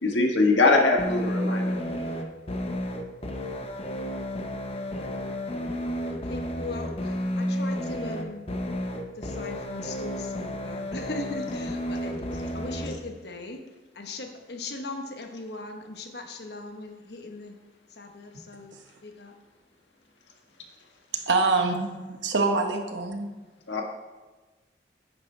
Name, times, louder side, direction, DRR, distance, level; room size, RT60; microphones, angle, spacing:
voice 1, 0.0-1.8 23.7-23.8, left 3 dB, 90° left, 1 dB, 1.5 m, -22 dB
sound 1, 1.0-13.0, equal, 35° left, 0.7 m, -31 dB
voice 2, 6.1-8.4 9.2-13.6 13.9-17.5 17.9-18.7 19.0-19.3, left 2 dB, 65° left, 4 dB, 1.1 m, -39 dB
voice 3, 21.1-23.3, right 3 dB, 85° right, 4 dB, 1.1 m, -25 dB
10.0 x 9.1 x 3.3 m, 1.2 s
head